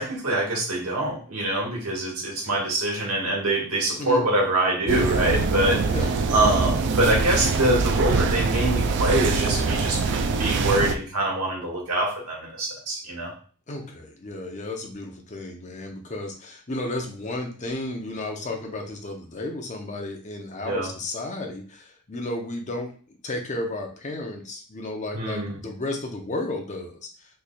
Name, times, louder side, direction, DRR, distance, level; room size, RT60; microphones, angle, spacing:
voice 1, 0.0-5.9 6.3-10.0 10.4-13.3 20.6-20.9 25.1-25.6, right 1 dB, 80° right, -3 dB, 1.4 m, -24 dB
sound 1, 4.9-11.0, right 4 dB, 55° right, 0.3 m, -23 dB
voice 2, 13.7-27.1, left 2 dB, 35° left, 2 dB, 0.7 m, -33 dB
4.0 x 3.2 x 2.2 m, 0.41 s
head